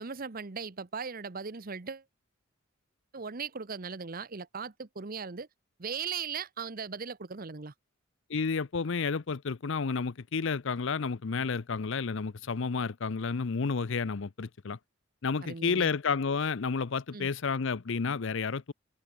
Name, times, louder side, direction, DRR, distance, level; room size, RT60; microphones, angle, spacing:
voice 1, 0.0-2.0 3.1-5.5 5.8-7.7 15.4-15.9 17.1-17.3, right 5 dB, 45° right, 0.9 m, -38 dB
voice 2, 8.3-14.8 15.2-18.7, left 5 dB, 65° left, 0.6 m, -31 dB
head